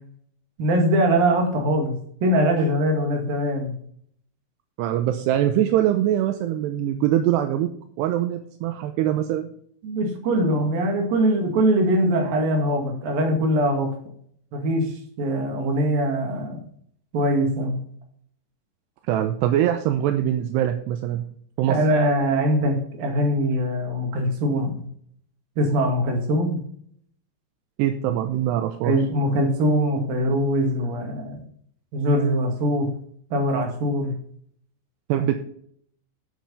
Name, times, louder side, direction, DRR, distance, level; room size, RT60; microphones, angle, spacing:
voice 1, 0.6-3.8 9.8-13.9 14.5-14.9 15.2-16.6 17.1-17.8 21.7-24.9 25.6-26.6 28.8-31.4 31.9-32.9 33.3-34.1, right 1 dB, 60° right, 3 dB, 3.5 m, -22 dB
voice 2, 4.8-7.7 8.0-9.5 19.1-21.3 21.6-21.8 27.8-29.0 35.1-35.4, right 11 dB, 80° right, 7 dB, 2.7 m, -23 dB
11.5 x 6.3 x 5.6 m, 0.63 s
omnidirectional pair, 5.1 m